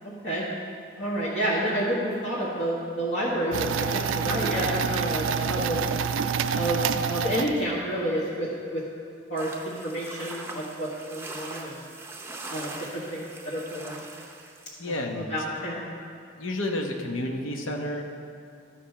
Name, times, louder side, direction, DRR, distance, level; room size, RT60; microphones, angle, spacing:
voice 1, 0.0-0.4 1.0-5.8 6.5-6.8 7.1-8.8 9.3-11.7 12.5-14.0 15.3-15.9, right 1 dB, 55° left, -7 dB, 1.3 m, -29 dB
sound 1, 3.5-7.9, right 6 dB, 75° right, 0.3 m, -27 dB
sound 2, 9.4-14.7, right 2 dB, 10° right, 0.6 m, -41 dB
voice 2, 14.8-15.3 16.4-18.0, left 1 dB, 80° left, 2 dB, 1.0 m, -30 dB
12.5 x 5.0 x 5.8 m, 2.4 s
head